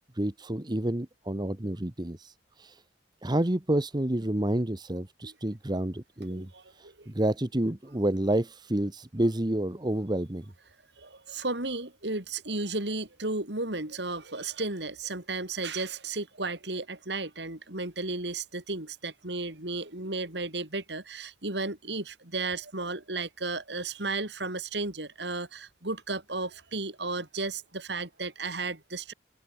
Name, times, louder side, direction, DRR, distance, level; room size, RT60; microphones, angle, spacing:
voice 1, 0.1-2.8 3.2-6.5 6.8-10.4, right 1 dB, 25° right, 1.1 m, -29 dB
voice 2, 6.3-7.1 11.0-29.1, right 3 dB, 65° right, 4.2 m, -34 dB
open air
head